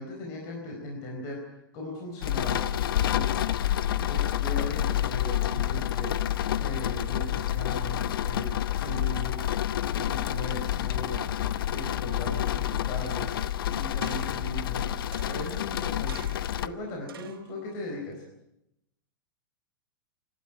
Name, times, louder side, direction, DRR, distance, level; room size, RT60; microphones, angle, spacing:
voice 1, 0.0-1.4 1.7-3.4 3.9-9.6 9.9-11.3 11.7-18.2, left 1 dB, 30° left, 0 dB, 4.5 m, -38 dB
sound 1, 2.2-16.7, left 11 dB, 75° left, 0.8 m, -28 dB
sound 2, 13.3-13.6 14.0-14.6 15.1-15.7 16.1-16.6 17.1-17.5 18.1-18.2, right 9 dB, 85° right, 3.1 m, -48 dB
25.5 x 12.5 x 9.9 m, 0.85 s
supercardioid pair, 175°, 12 cm